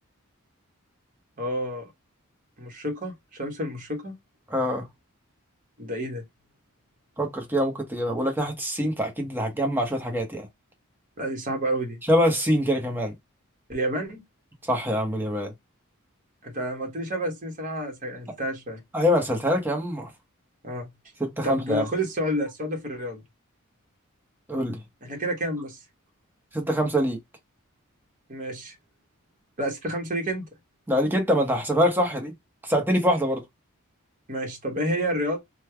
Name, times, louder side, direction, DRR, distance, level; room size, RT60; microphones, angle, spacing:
voice 1, 1.4-1.9 2.6-3.1 3.4-4.2 5.8-6.2 11.2-12.0 13.7-14.2 16.4-18.8 20.6-20.9 21.4-23.2 25.0-25.8 28.3-28.8 29.6-30.5 34.3-35.4, right 1 dB, 40° right, 1.0 m, -29 dB
voice 2, 4.5-4.9 7.2-10.5 12.1-13.1 14.7-15.5 18.9-20.1 21.2-21.9 24.5-24.8 26.5-27.2 30.9-32.3 32.6-33.4, equal, 10° right, 1.0 m, -24 dB
3.2 x 2.2 x 3.3 m
head